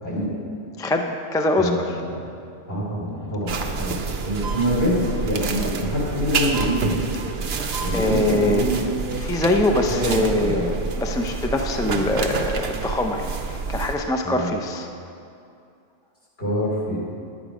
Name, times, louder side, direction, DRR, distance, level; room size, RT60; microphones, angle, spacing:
voice 1, 0.0-0.4 1.6-2.3 2.7-7.1 7.8-8.8 9.4-9.6 9.9-10.8 14.2-14.5 16.4-17.0, equal, 70° left, -6 dB, 3.2 m, -25 dB
voice 2, 0.8-1.8 7.6-8.7 9.2-10.6 11.0-14.9, left 2 dB, 5° left, 3 dB, 0.3 m, -23 dB
sound 1, 3.5-13.9, right 5 dB, 75° right, 1.0 m, -28 dB
10.5 x 8.6 x 4.9 m, 2.5 s
omnidirectional pair, 1.1 m